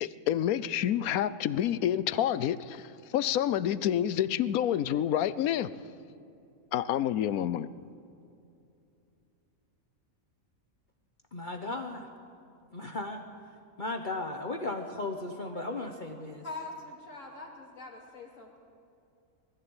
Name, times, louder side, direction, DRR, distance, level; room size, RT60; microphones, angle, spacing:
voice 1, 0.0-5.7 6.7-7.7, left 11 dB, 85° left, 16 dB, 1.1 m, -28 dB
voice 2, 11.3-12.1 12.7-13.2 13.8-16.4, left 2 dB, 35° left, 3 dB, 1.1 m, -36 dB
voice 3, 15.5-15.9 16.4-18.6, left 2 dB, 60° left, -1 dB, 3.3 m, -44 dB
20.5 x 14.5 x 8.8 m, 2.6 s
omnidirectional pair, 1.5 m